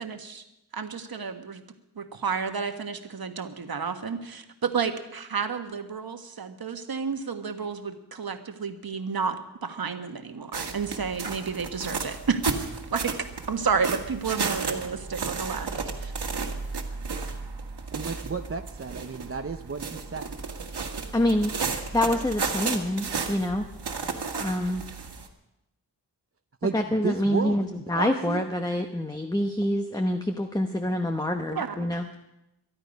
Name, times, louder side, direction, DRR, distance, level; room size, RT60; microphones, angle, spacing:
voice 1, 0.0-0.4 0.7-1.6 2.0-12.6 12.9-13.1 13.5-15.7 16.0-16.1 31.5-31.7, right 5 dB, 60° right, 7 dB, 1.5 m, -31 dB
sound 1, 10.5-25.3, right 4 dB, 80° right, 1.8 m, -33 dB
voice 2, 17.9-20.3 26.6-27.6 28.0-28.4, right 5 dB, 35° right, 6 dB, 0.7 m, -32 dB
voice 3, 21.1-21.5 21.9-23.7 24.4-24.8 26.7-32.1, left 1 dB, 10° left, 5 dB, 1.0 m, -26 dB
23.0 x 11.5 x 5.3 m, 0.91 s
wide cardioid pair, 95°, 40 cm